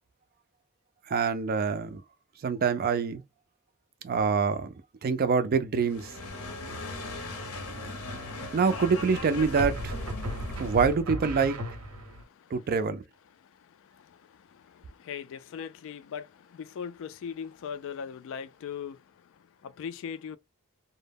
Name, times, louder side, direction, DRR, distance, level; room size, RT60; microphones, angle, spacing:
voice 1, 1.1-2.0 2.4-3.2 4.0-4.7 5.0-6.1 8.5-9.9 10.6-11.6 12.5-13.0, right 5 dB, 45° right, 0.4 m, -25 dB
sound 1, 5.8-11.0, left 1 dB, 85° left, 0.7 m, -37 dB
sound 2, 7.1-7.4 9.6-12.2, equal, 90° right, 0.7 m, -37 dB
voice 2, 12.0-12.6 13.4-20.4, left 7 dB, 65° left, 0.3 m, -40 dB
2.1 x 2.0 x 3.4 m
head